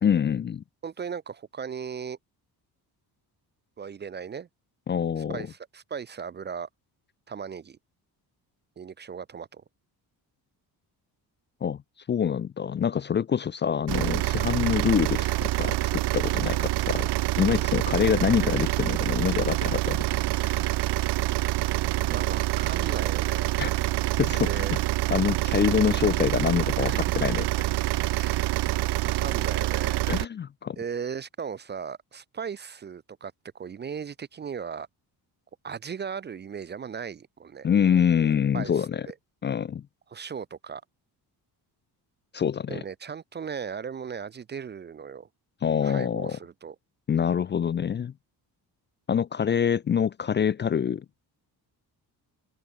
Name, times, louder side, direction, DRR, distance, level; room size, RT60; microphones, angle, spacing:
voice 1, 0.0-0.6 4.9-5.5 11.6-11.8 12.1-17.1 17.4-20.0 20.4-20.7 23.6-23.7 24.2-24.7 25.1-27.4 30.1-30.8 37.6-39.0 39.4-39.8 42.3-42.8 45.6-46.4 47.1-48.1 49.1-51.0, left 8 dB, 30° left, 0.4 m, -25 dB
voice 2, 0.8-2.2 3.8-4.5 5.2-6.7 7.3-7.8 8.8-9.6 22.0-23.6 24.4-24.8 26.8-27.0 28.1-28.5 29.0-30.1 30.8-34.9 35.6-37.7 38.5-39.1 40.1-40.8 42.7-45.3 45.8-46.8, right 6 dB, 25° right, 0.5 m, -37 dB
sound 1, 13.9-30.2, right 17 dB, 80° right, 0.8 m, -26 dB
open air
cardioid pair, 165°, 39 cm